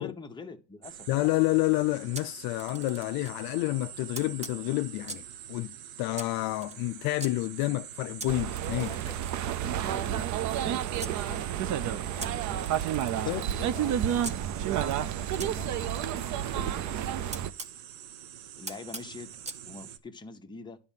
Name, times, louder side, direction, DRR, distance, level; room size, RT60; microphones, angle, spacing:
voice 1, 0.0-1.1 8.9-9.1 9.6-12.7 13.2-14.2 14.6-17.1 18.6-19.3 19.6-20.8, left 4 dB, 10° left, 1.0 m, -45 dB
sound 1, 0.8-20.0, right 10 dB, 80° right, 1.1 m, -46 dB
voice 2, 1.1-5.2 5.5-8.9 13.2-13.5, left 19 dB, 55° left, 0.5 m, -29 dB
Camera, 2.1-3.4 4.1-5.4 6.1-7.3 8.2-11.2 12.2-14.4 15.4-17.8 18.7-19.6, right 2 dB, 15° right, 0.9 m, -44 dB
sound 2, 8.3-17.5, right 10 dB, 40° right, 0.6 m, -30 dB
10.5 x 4.2 x 7.4 m
supercardioid pair, 115°, 44 cm